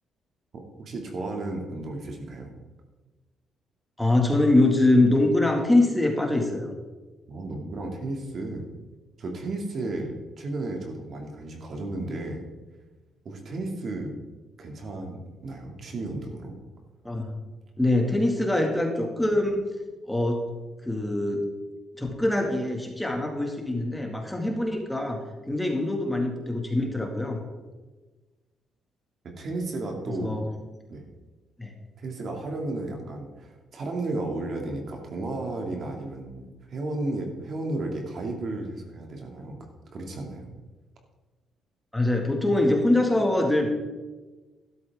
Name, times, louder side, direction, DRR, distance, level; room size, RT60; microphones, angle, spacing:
voice 1, 0.8-2.5 7.3-8.7 9.2-12.4 13.2-14.1 14.6-16.5 29.4-30.3 30.9-31.1 32.0-39.6 39.9-40.5, right 2 dB, 55° right, 2 dB, 2.4 m, -33 dB
voice 2, 4.0-6.7 17.0-17.3 17.8-19.6 20.1-20.4 20.8-21.5 22.0-27.4 30.1-30.5 31.6-31.7 41.9-43.7, left 2 dB, 5° left, 1 dB, 2.1 m, -24 dB
12.0 x 12.0 x 3.7 m, 1.2 s
cardioid pair, 90°, 0 cm